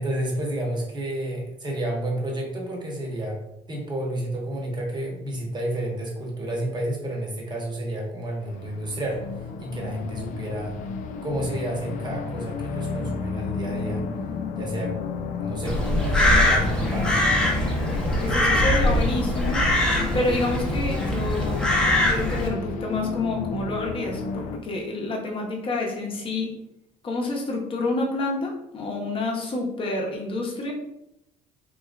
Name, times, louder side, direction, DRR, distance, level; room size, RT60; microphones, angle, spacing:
voice 1, 0.0-3.4 3.7-10.8 11.2-14.0 14.6-15.0 15.4-17.2 17.7-18.4 18.6-18.8, right 1 dB, 30° right, 0 dB, 1.0 m, -31 dB
sound 1, 8.4-24.6, left 5 dB, 60° left, 0.4 m, -32 dB
Crow, 15.6-22.5, left 1 dB, 5° left, 0.7 m, -22 dB
voice 2, 18.2-19.6 20.1-26.5 27.0-30.7, left 2 dB, 35° left, 0 dB, 0.8 m, -28 dB
3.8 x 2.7 x 2.4 m, 0.84 s
cardioid pair, 120°, 15 cm